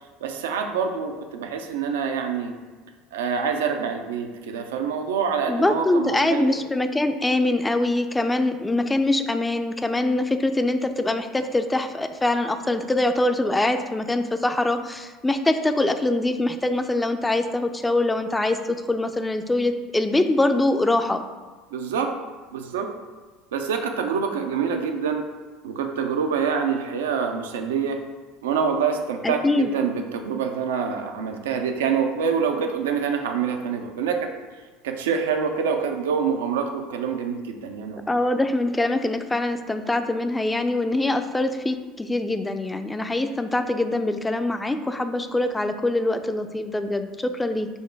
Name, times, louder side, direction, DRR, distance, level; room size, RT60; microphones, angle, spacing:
voice 1, 0.2-2.6 3.1-6.6 21.7-22.1 22.5-22.9 23.5-25.2 25.6-28.0 28.4-34.3 34.8-38.0, right 6 dB, 85° right, 4 dB, 0.5 m, -26 dB
voice 2, 5.5-21.2 29.2-29.7 38.1-47.7, left 2 dB, 10° left, 8 dB, 0.4 m, -23 dB
5.4 x 2.1 x 4.5 m, 1.3 s
hypercardioid pair, 90°, 0 cm